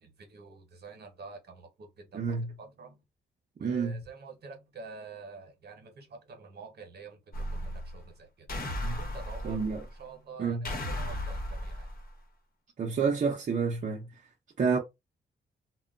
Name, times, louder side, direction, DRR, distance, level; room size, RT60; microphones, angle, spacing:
voice 1, 0.0-2.2 2.6-3.0 3.6-7.2 7.5-8.5 9.0-9.7 10.0-11.9, right 5 dB, 65° right, 0.9 m, -47 dB
voice 2, 2.1-2.5 3.6-4.0 8.8-9.0 9.4-9.9 10.4-10.7 12.8-14.1 14.6-14.8, right 5 dB, 45° right, 0.6 m, -29 dB
sound 1, 7.3-8.0 8.5-9.9 10.6-12.1, left 1 dB, 55° left, 1.0 m, -35 dB
2.1 x 2.1 x 3.7 m
cardioid pair, 100°, 18 cm